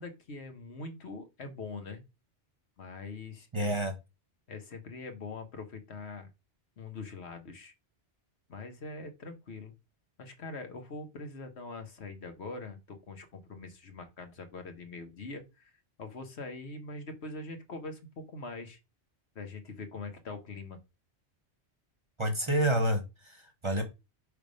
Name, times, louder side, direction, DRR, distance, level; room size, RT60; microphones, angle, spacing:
voice 1, 0.0-2.0 2.8-3.8 4.5-6.3 6.8-7.7 8.5-9.7 10.2-15.7 16.0-18.8 19.3-20.8, left 3 dB, 70° left, 7 dB, 1.4 m, -43 dB
voice 2, 3.5-3.9 22.2-23.8, right 1 dB, 25° right, 6 dB, 1.1 m, -29 dB
5.6 x 3.4 x 5.2 m, 0.25 s
omnidirectional pair, 1.1 m